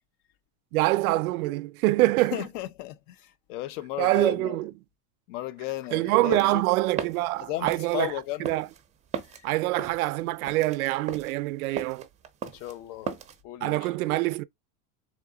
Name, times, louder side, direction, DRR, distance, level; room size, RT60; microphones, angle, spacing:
voice 1, 0.7-2.5 4.0-4.7 5.9-8.1 8.4-8.7 9.4-12.1 13.6-14.4, right 18 dB, 85° right, 0.5 m, -25 dB
voice 2, 2.3-4.6 5.3-6.6 7.5-8.5 9.3-9.4 12.5-13.1 13.4-13.9, left 15 dB, 60° left, 0.7 m, -35 dB
sound 1, 6.1-13.4, right 7 dB, 15° right, 0.5 m, -37 dB
3.7 x 2.6 x 3.8 m
supercardioid pair, 125°, 42 cm